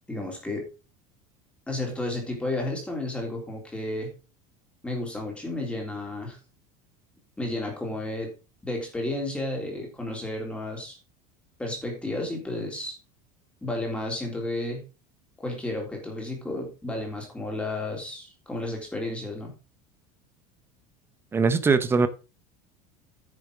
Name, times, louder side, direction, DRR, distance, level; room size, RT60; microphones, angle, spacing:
voice 1, 0.1-0.7 1.7-4.1 4.8-6.4 7.4-8.3 8.6-11.0 11.6-13.0 13.6-14.8 15.4-19.5, left 1 dB, 5° left, 3.4 m, -32 dB
voice 2, 21.3-22.1, right 4 dB, 15° right, 0.8 m, -21 dB
10.0 x 6.5 x 5.0 m
cardioid pair, 165°, 18 cm